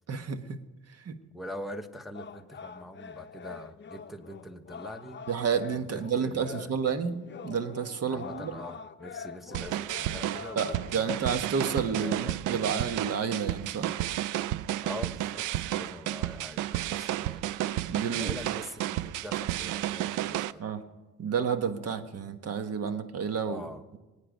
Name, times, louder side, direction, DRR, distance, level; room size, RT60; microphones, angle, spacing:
voice 1, 0.1-0.6 1.0-1.1 5.3-8.5 10.5-13.9 17.9-18.3 20.6-20.8 21.2-23.7, right 6 dB, 55° right, 8 dB, 1.4 m, -30 dB
voice 2, 1.3-5.2 5.7-6.7 8.1-11.4 11.9-12.8 14.8-17.5 18.1-20.6 23.4-23.8, equal, ahead, 3 dB, 1.2 m, -43 dB
sound 1, 2.1-11.0, left 6 dB, 40° left, 0.8 m, -45 dB
sound 2, 9.5-20.5, right 14 dB, 90° right, 0.5 m, -32 dB
24.5 x 9.0 x 5.3 m, 1.2 s
cardioid pair, 90°, 30 cm